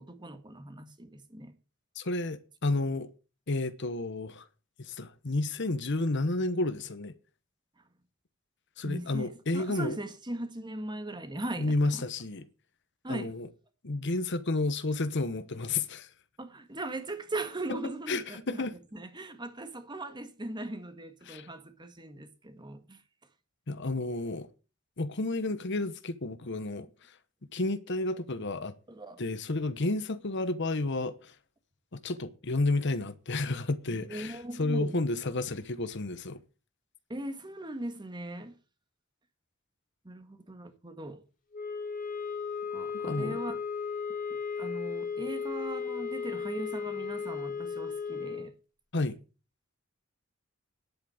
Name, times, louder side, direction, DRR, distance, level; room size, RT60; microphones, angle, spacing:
voice 1, 0.0-1.5 8.8-12.0 13.0-13.3 16.4-18.6 18.9-23.0 26.8-26.9 28.9-29.2 33.9-35.0 37.1-38.5 40.0-41.2 42.7-43.6 44.1-44.2 44.6-48.5, right 2 dB, 20° right, 1.8 m, -39 dB
voice 2, 2.0-3.1 3.5-4.5 4.8-7.1 8.8-10.0 11.6-12.5 13.1-13.5 13.8-16.1 17.7-17.8 18.1-18.7 21.3-21.5 23.7-24.5 25.0-26.9 27.5-28.7 29.2-31.3 31.9-36.4 43.0-43.4 48.9-49.2, left 2 dB, 60° left, 1.1 m, -31 dB
sound 1, 41.5-48.5, left 5 dB, 40° left, 2.4 m, -35 dB
10.5 x 8.6 x 7.9 m
head